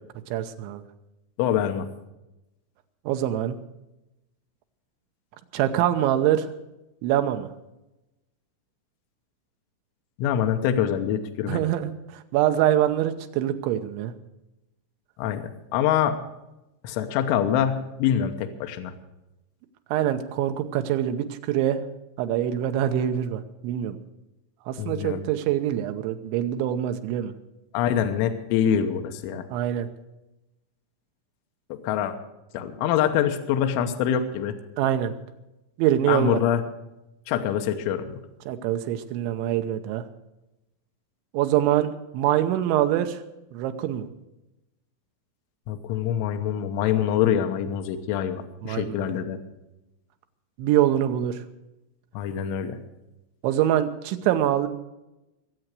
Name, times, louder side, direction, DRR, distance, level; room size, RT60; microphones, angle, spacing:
voice 1, 0.3-0.8 3.1-3.6 5.5-6.5 7.0-7.5 11.5-14.1 19.9-21.8 22.2-24.0 24.7-27.3 29.5-29.9 34.8-35.1 35.8-36.4 38.5-40.0 41.3-43.2 43.5-44.1 48.6-49.1 50.6-51.4 53.4-54.7, right 11 dB, 80° right, 7 dB, 2.9 m, -24 dB
voice 2, 1.4-1.9 10.2-11.6 15.2-16.2 16.8-18.9 24.8-25.3 27.7-29.5 31.7-32.2 32.5-34.6 36.1-36.6 37.3-38.2 45.7-49.4 52.1-52.8, left 9 dB, 80° left, 5 dB, 3.3 m, -25 dB
22.5 x 7.9 x 6.4 m, 0.95 s
omnidirectional pair, 5.9 m